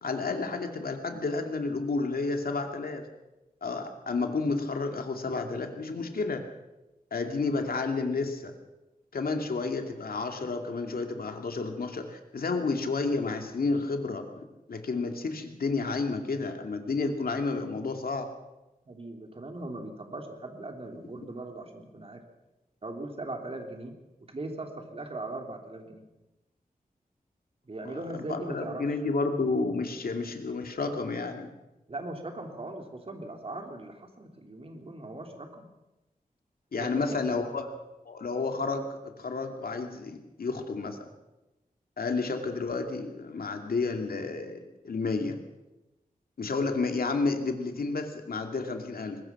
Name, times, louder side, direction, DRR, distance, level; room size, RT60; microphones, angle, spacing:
voice 1, 0.0-3.1 3.6-6.4 7.1-8.5 9.1-18.3 28.1-31.5 36.7-37.7 38.0-41.0 42.0-44.6 44.8-45.4 46.4-49.2, left 3 dB, 80° left, 5 dB, 2.5 m, -31 dB
voice 2, 18.9-22.2 22.8-23.9 24.3-26.0 27.6-28.9 31.9-35.6 36.8-37.4, right 2 dB, 40° right, 3 dB, 3.2 m, -39 dB
22.0 x 20.5 x 6.0 m, 1.0 s
wide cardioid pair, 115°, 15 cm